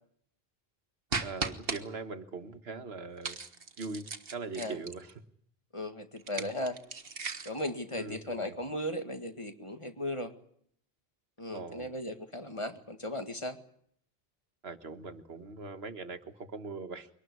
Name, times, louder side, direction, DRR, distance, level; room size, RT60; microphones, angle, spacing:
sound 1, 1.1-1.8 3.2-5.1 6.2-7.6, right 4 dB, 65° right, 1.7 m, -37 dB
voice 1, 1.2-3.4 3.8-5.1 6.3-6.5 7.9-8.5 11.5-11.9 14.6-17.1, right 4 dB, 85° right, 10 dB, 1.6 m, -41 dB
voice 2, 5.7-6.8 7.5-10.3 11.4-13.6, left 1 dB, 30° left, 7 dB, 2.0 m, -36 dB
23.5 x 19.0 x 9.6 m, 0.66 s
omnidirectional pair, 1.0 m